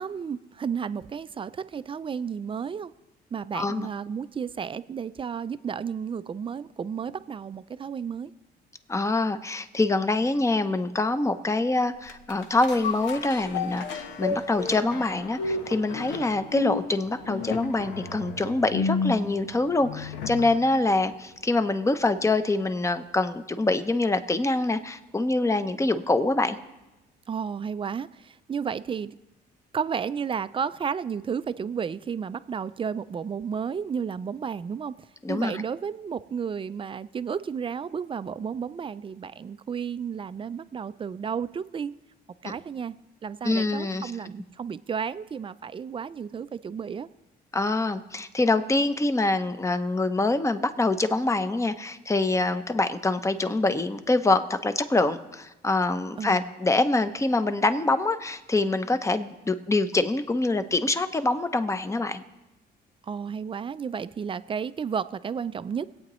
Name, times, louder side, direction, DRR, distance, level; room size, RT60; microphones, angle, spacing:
voice 1, 0.0-2.9 3.3-8.3 27.3-29.2 29.7-34.9 35.3-41.9 42.4-43.0 43.2-47.1 56.2-56.5 63.0-66.0, right 7 dB, 30° right, 14 dB, 0.4 m, -32 dB
voice 2, 3.5-3.9 8.9-26.6 35.2-35.6 42.4-42.5 43.4-44.1 47.5-62.2, left 2 dB, 15° left, 10 dB, 0.7 m, -25 dB
sound 1, 12.1-20.7 21.1-21.2, left 4 dB, 90° left, 1.0 m, -32 dB
22.0 x 8.7 x 3.1 m, 1.0 s
cardioid pair, 95°, 18 cm